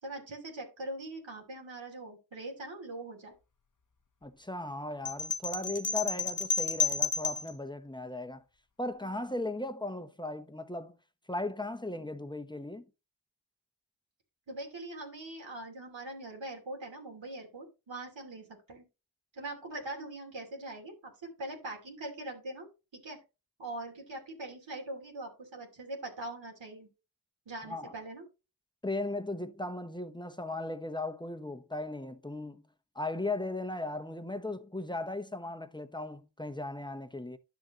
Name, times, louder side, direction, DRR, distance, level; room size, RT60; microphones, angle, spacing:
voice 1, 0.0-3.4 14.5-18.8 19.3-22.7 22.9-23.2 23.6-26.9 27.5-28.3, right 2 dB, 85° right, 2.7 m, -42 dB
voice 2, 4.2-8.4 8.8-11.0 11.3-12.8 27.7-27.9 28.8-32.6 32.9-37.4, left 2 dB, 10° left, 1.0 m, -37 dB
sound 1, 5.1-7.5, left 4 dB, 45° left, 1.0 m, -31 dB
10.5 x 6.5 x 3.0 m
cardioid pair, 50°, 44 cm